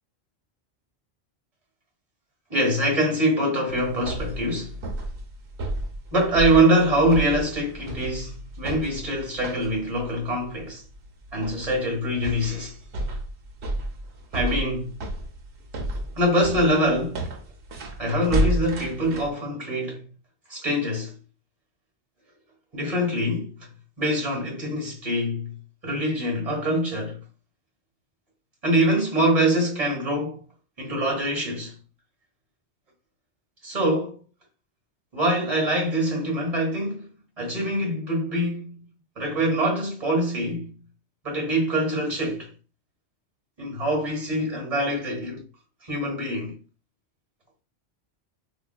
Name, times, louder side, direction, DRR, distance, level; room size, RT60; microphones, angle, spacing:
voice 1, 2.5-4.8 6.1-10.8 11.3-12.7 14.3-14.9 16.2-17.3 18.0-20.0 20.5-21.1 22.7-23.5 24.0-25.6 25.8-27.2 28.6-30.4 30.8-31.8 33.6-34.2 35.1-38.8 39.2-40.7 41.2-42.5 43.6-45.4 45.8-46.6, right 1 dB, 35° right, 1.4 m, -24 dB
sound 1, 3.7-19.3, right 1 dB, 90° right, 1.0 m, -32 dB
3.8 x 2.6 x 2.2 m
omnidirectional pair, 1.1 m